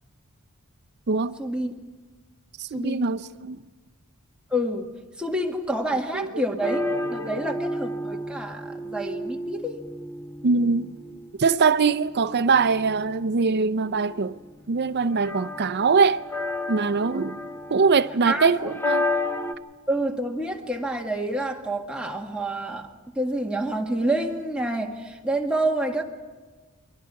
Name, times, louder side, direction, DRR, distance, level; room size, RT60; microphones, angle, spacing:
voice 1, 1.4-1.7 2.7-3.1 4.5-4.9 5.2-9.8 11.6-11.7 18.3-18.5 19.9-22.9 23.2-26.0, right 1 dB, 5° right, 1.7 m, -28 dB
voice 2, 2.7-3.6 6.1-6.4 7.2-7.4 10.4-10.9 11.4-14.4 14.7-16.2 16.7-17.4 17.7-19.1, right 4 dB, 50° right, 0.6 m, -22 dB
sound 1, 6.6-19.5, left 1 dB, 10° left, 1.0 m, -32 dB
29.0 x 23.0 x 4.7 m
head